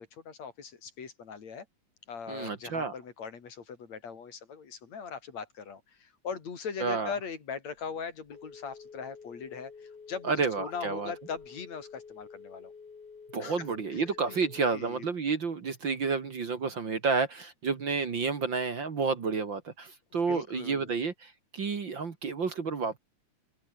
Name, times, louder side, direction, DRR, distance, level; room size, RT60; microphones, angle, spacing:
voice 1, 0.0-1.7 2.1-12.7 13.4-13.7 13.9-14.0 14.3-14.4 14.7-15.0 20.3-20.9, left 6 dB, 65° left, 4.3 m, -40 dB
voice 2, 2.3-2.9 6.8-7.1 10.2-11.1 13.3-23.0, right 4 dB, 45° right, 2.4 m, -30 dB
Telephone, 7.8-15.1, left 5 dB, 85° left, 6.0 m, -49 dB
open air
omnidirectional pair, 3.4 m